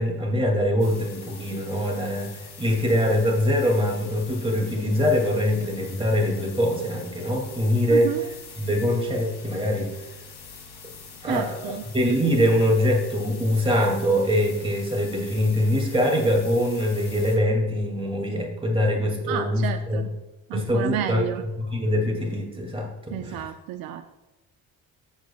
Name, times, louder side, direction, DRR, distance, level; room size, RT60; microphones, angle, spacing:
voice 1, 0.0-8.2 8.6-10.0 10.8-10.9 11.2-20.0 20.5-21.3 21.6-23.5, equal, 15° right, 0 dB, 2.4 m, -23 dB
sound 1, 0.8-17.4, left 5 dB, 75° left, 2.6 m, -44 dB
voice 2, 7.9-8.2 11.3-11.8 19.3-20.1 20.5-21.4 23.1-24.2, right 11 dB, 85° right, 7 dB, 0.6 m, -31 dB
14.5 x 8.0 x 2.3 m, 1.0 s
cardioid pair, 115°, 34 cm